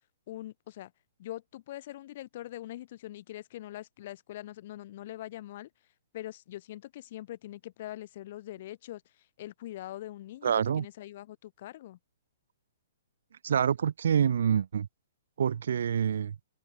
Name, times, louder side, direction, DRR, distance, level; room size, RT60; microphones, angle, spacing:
voice 1, 0.3-0.9 1.2-5.7 6.1-12.0, left 14 dB, 40° left, 3.1 m, -43 dB
voice 2, 10.4-10.9 13.4-14.9 15.4-16.4, right 8 dB, 70° right, 1.0 m, -26 dB
hypercardioid pair, 170°, 0 cm